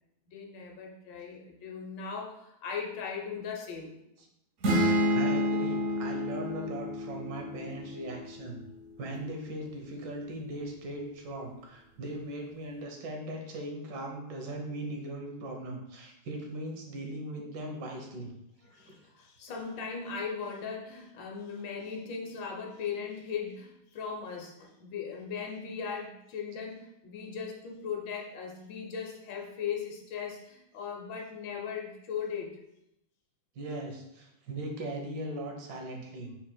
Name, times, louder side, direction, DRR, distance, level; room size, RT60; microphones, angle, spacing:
voice 1, 0.3-3.9 18.6-32.5, left 6 dB, 80° left, 0 dB, 1.5 m, -38 dB
sound 1, 4.6-8.4, equal, 55° right, 1.2 m, -29 dB
voice 2, 4.8-8.6 9.0-18.3 18.7-18.9 33.5-36.3, right 1 dB, 75° right, 2 dB, 1.4 m, -39 dB
5.2 x 4.3 x 2.2 m, 0.83 s
omnidirectional pair, 2.0 m